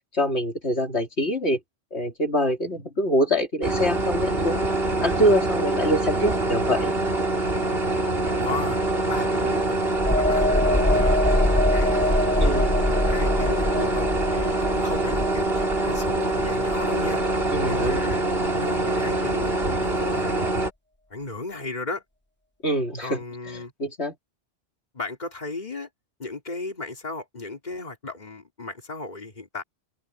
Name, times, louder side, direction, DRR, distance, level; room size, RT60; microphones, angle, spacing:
voice 1, 0.1-1.6 1.9-4.7 5.0-6.9 12.4-12.7 17.5-18.0 22.6-23.2 23.5-24.1, equal, 80° left, 3.6 m, -24 dB
sound 1, 3.6-20.7, right 2 dB, 65° right, 3.6 m, -25 dB
voice 2, 8.4-12.1 12.4-17.2 17.7-18.2 18.5-19.5 19.8-20.6 21.1-22.0 23.0-23.7 24.9-25.9 26.2-29.6, left 3 dB, 40° left, 3.2 m, -35 dB
sound 2, 10.0-17.5 17.8-18.0, left 1 dB, 10° left, 1.0 m, -24 dB
omnidirectional pair, 1.1 m